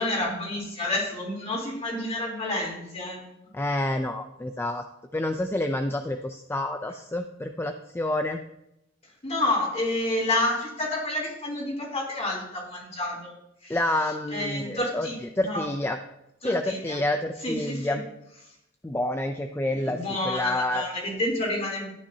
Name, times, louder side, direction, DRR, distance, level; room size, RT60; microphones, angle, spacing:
voice 1, 0.0-3.2 9.2-13.3 13.6-13.8 14.3-15.2 15.4-15.7 16.4-17.0 17.4-18.0 19.7-21.9, left 1 dB, 35° left, -3 dB, 3.4 m, -29 dB
voice 2, 3.5-4.8 5.1-8.4 13.7-16.0 16.4-18.0 18.8-20.0 20.2-20.9, left 1 dB, 10° left, 6 dB, 0.4 m, -28 dB
13.0 x 9.8 x 2.8 m, 0.84 s
head